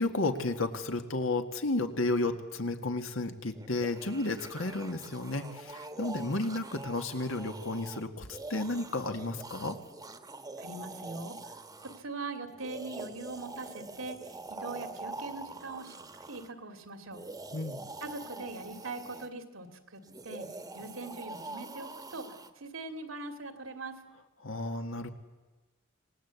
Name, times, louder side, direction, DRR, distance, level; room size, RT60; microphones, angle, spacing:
voice 1, 0.0-9.8 17.5-17.8 24.4-25.1, left 2 dB, 75° left, 6 dB, 1.8 m, -32 dB
sound 1, 3.5-12.0 12.5-16.5 17.1-19.3 20.0-22.5, right 2 dB, 20° right, 1.2 m, -45 dB
voice 2, 10.6-11.3 11.8-14.2 14.5-16.0 16.3-17.2 18.0-20.5 20.7-22.3 22.6-24.0, right 3 dB, 90° right, 6 dB, 2.4 m, -41 dB
26.0 x 19.0 x 8.3 m, 1.2 s
head